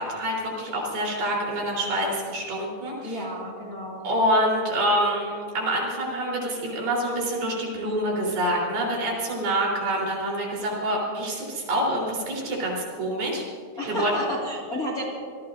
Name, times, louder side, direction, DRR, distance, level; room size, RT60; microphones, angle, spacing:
voice 1, 0.0-3.2 4.0-13.4 13.9-14.1, right 1 dB, 70° right, -3 dB, 5.7 m, -26 dB
voice 2, 3.0-4.0 13.8-15.0, equal, 30° left, -3 dB, 2.0 m, -31 dB
27.5 x 19.5 x 2.6 m, 2.2 s
omnidirectional pair, 4.4 m